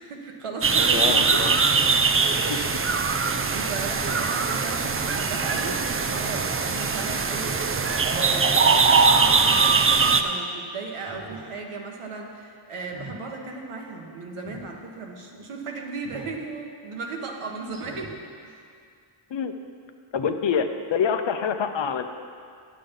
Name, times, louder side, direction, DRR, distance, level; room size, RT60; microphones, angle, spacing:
voice 1, 0.0-1.4 3.5-7.6 8.0-18.6, right 4 dB, 85° right, 1 dB, 1.3 m, -35 dB
sound 1, 0.6-10.2, right 4 dB, 30° right, 0.5 m, -21 dB
voice 2, 0.9-1.6 2.5-2.6 19.3-19.5 20.1-22.1, left 7 dB, 60° left, 7 dB, 0.7 m, -26 dB
Speech synthesizer, 4.0-4.3 5.5-6.0 7.3-7.8 9.1-9.6 10.0-10.1 11.0-11.5 11.9-12.2 12.8-13.2 14.4-14.7 16.0-16.4 16.9-17.0 17.7-18.2 18.6-18.7, right 3 dB, 55° right, 1.5 m, -44 dB
9.5 x 7.8 x 5.4 m, 2.2 s
cardioid pair, 80°, 50 cm